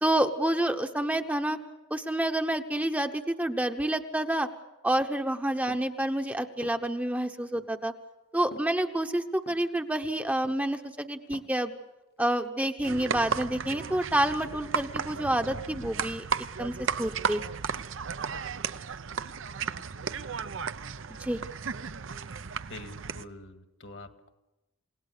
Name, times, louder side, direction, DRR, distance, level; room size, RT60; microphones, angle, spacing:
voice 1, 0.0-1.6 1.9-4.5 4.8-7.9 8.3-11.7 12.2-17.4 21.2-21.4, right 1 dB, 5° right, 6 dB, 0.9 m, -28 dB
sound 1, 5.7-6.0 6.6-6.9 7.5-7.7 8.5-8.7 9.4-9.7 10.4-10.9 11.1-11.6 12.2-12.4, left 2 dB, 50° left, 1.2 m, -48 dB
sound 2, 12.8-23.2, right 6 dB, 70° right, 0.7 m, -34 dB
voice 2, 22.6-24.3, left 2 dB, 65° left, 7 dB, 1.9 m, -46 dB
29.5 x 18.0 x 6.7 m, 1.0 s
head